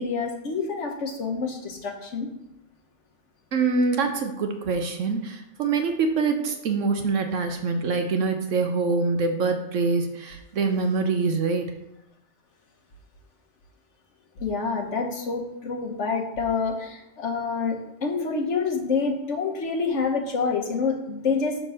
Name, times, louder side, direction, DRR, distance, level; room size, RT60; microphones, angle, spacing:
voice 1, 0.0-2.3 14.4-21.6, left 4 dB, 60° left, 2 dB, 1.4 m, -27 dB
voice 2, 3.5-11.7, right 4 dB, 70° right, 5 dB, 1.0 m, -25 dB
6.9 x 3.8 x 6.2 m, 0.89 s
omnidirectional pair, 1.4 m